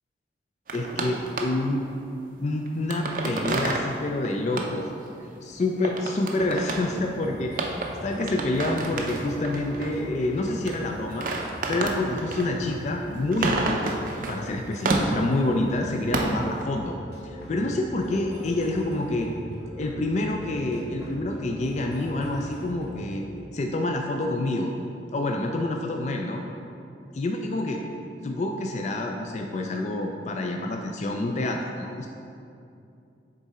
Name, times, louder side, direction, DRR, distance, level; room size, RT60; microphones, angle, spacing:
voice 1, 0.7-1.8 2.4-4.9 5.4-7.6 8.0-11.3 11.7-14.0 14.3-16.9 17.2-19.3 19.8-23.2 23.5-24.7 25.1-26.4 27.1-27.8 28.2-32.1, left 2 dB, 40° left, 2 dB, 0.3 m, -27 dB
sound 1, 0.7-1.8 2.4-3.9 4.2-4.3 4.6-4.7 5.5-5.6 5.8-6.9 7.6-10.0 10.5-10.8 11.1-14.4 14.7-15.5 15.8-16.6, right 3 dB, 50° right, 0.5 m, -30 dB
sound 2, 6.8-23.2, left 1 dB, 65° left, 0.9 m, -42 dB
6.6 x 3.6 x 4.2 m, 2.6 s
head